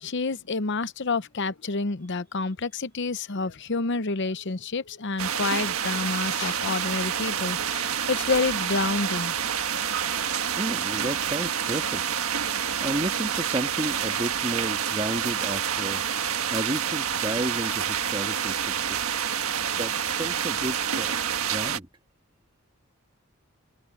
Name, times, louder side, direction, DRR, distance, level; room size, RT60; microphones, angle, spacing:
voice 1, 0.0-9.3, left 3 dB, 55° left, 0.8 m, -28 dB
sound 1, 5.2-21.8, right 8 dB, 80° right, 1.5 m, -28 dB
voice 2, 10.6-12.0 12.5-16.0 16.5-19.0 19.8-21.1 21.4-21.9, right 1 dB, 25° right, 1.7 m, -32 dB
open air
head